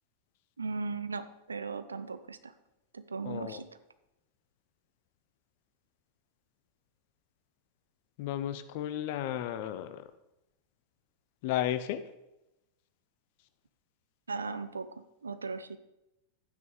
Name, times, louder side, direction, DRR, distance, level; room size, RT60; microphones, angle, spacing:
voice 1, 0.6-2.5 2.9-3.7 14.3-15.8, right 4 dB, 75° right, 12 dB, 0.8 m, -37 dB
voice 2, 3.2-3.6 8.2-10.1 11.4-12.0, left 11 dB, 50° left, 11 dB, 1.0 m, -33 dB
12.0 x 9.5 x 5.0 m, 0.93 s
figure-of-eight pair, 90°, 0 cm